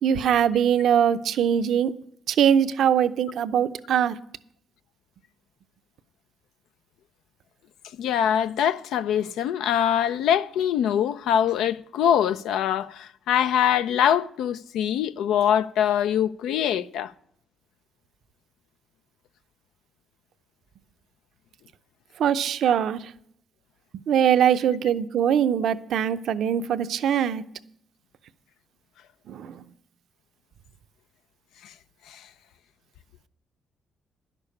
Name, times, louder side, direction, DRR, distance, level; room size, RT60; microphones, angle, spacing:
voice 1, 0.0-1.9 2.3-4.2 22.2-23.0 24.1-27.4 29.3-29.6, right 9 dB, 70° right, 0.6 m, -22 dB
voice 2, 8.0-17.1 32.1-32.2, left 9 dB, 85° left, 0.5 m, -23 dB
11.0 x 6.8 x 8.4 m
cardioid pair, 90°, 0 cm